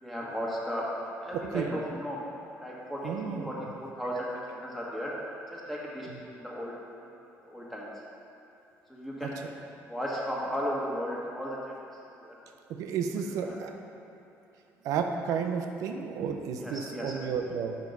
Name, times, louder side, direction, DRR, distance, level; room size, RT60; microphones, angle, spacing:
voice 1, 0.0-2.2 2.6-5.1 5.5-6.7 7.0-7.1 7.4-7.9 8.9-9.4 9.9-11.7 12.2-12.4 13.4-13.6 16.6-17.2, equal, 5° left, -5 dB, 1.4 m, -35 dB
voice 2, 1.3-1.7 3.0-3.5 9.2-9.3 12.7-13.7 14.8-17.8, right 6 dB, 80° right, 5 dB, 0.5 m, -32 dB
5.1 x 4.6 x 5.4 m, 2.8 s
cardioid pair, 105°, 6 cm